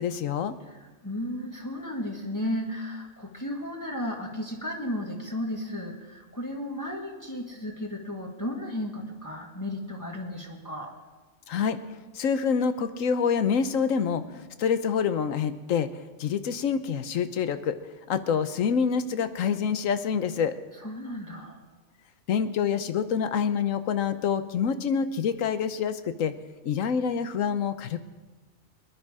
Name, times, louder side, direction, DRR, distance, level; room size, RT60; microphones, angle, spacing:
voice 1, 0.0-0.6 11.5-11.8 12.1-15.9 16.2-17.8 18.1-20.6 22.3-26.3 26.6-28.0, left 7 dB, 85° left, 11 dB, 1.2 m, -26 dB
voice 2, 0.7-10.9 20.8-21.6, left 1 dB, 15° left, -1 dB, 1.6 m, -34 dB
21.5 x 10.5 x 4.9 m, 1.3 s
omnidirectional pair, 1.3 m